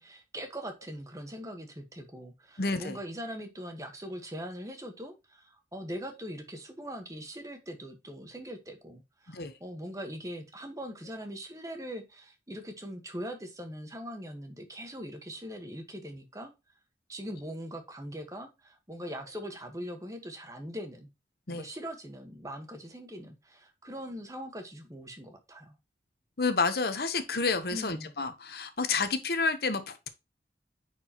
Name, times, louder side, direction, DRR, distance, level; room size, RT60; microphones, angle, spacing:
voice 1, 0.0-16.5 17.1-21.1 21.5-25.8 27.7-28.1, equal, 20° right, 1.3 m, -41 dB
voice 2, 2.6-3.0 9.3-9.5 21.5-21.6 26.4-30.1, left 4 dB, 60° left, 0.9 m, -30 dB
9.5 x 4.7 x 2.9 m
head